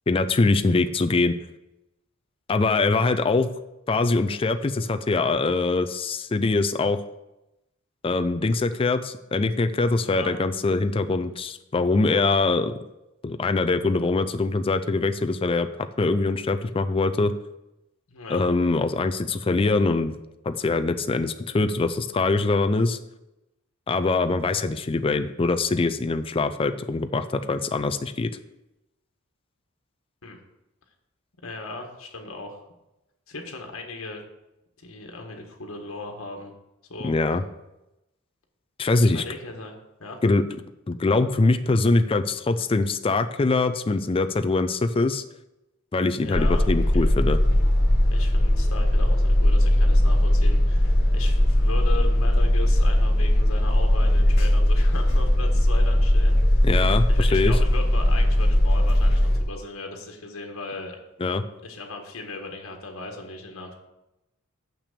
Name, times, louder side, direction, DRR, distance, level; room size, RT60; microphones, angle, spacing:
voice 1, 0.1-1.4 2.5-3.5 3.9-7.0 8.0-12.8 13.2-15.7 16.0-17.3 18.3-20.1 20.5-23.0 23.9-28.3 37.0-37.4 38.8-39.2 40.2-40.4 40.9-45.2 45.9-47.4 56.6-57.5 61.2-61.4, left 3 dB, 25° left, 8 dB, 0.4 m, -23 dB
voice 2, 10.0-10.3 18.1-18.4 30.2-30.4 31.4-32.6 33.3-34.2 34.8-36.5 36.9-37.1 38.9-40.2 46.1-46.7 46.9-47.1 48.1-56.4 57.1-61.0 61.6-63.8, left 3 dB, 70° left, 2 dB, 1.5 m, -37 dB
sound 1, 46.3-59.4, left 1 dB, 50° left, 2.3 m, -19 dB
6.8 x 6.0 x 6.7 m, 0.93 s
head